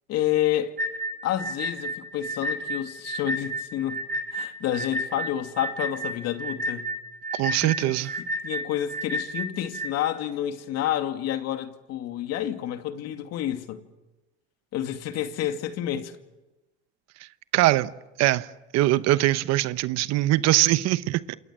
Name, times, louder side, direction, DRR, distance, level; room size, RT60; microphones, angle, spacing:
voice 1, 0.1-0.8 1.2-4.0 4.3-6.9 7.6-7.9 8.4-13.8 14.7-16.1, left 11 dB, 60° left, 2.4 m, -29 dB
sound 1, 0.8-9.9, right 1 dB, 30° right, 4.5 m, -31 dB
voice 2, 7.3-8.1 17.5-17.9 18.2-18.5 18.7-21.3, right 16 dB, 60° right, 1.1 m, -22 dB
28.0 x 27.5 x 7.5 m
supercardioid pair, 95°, 29 cm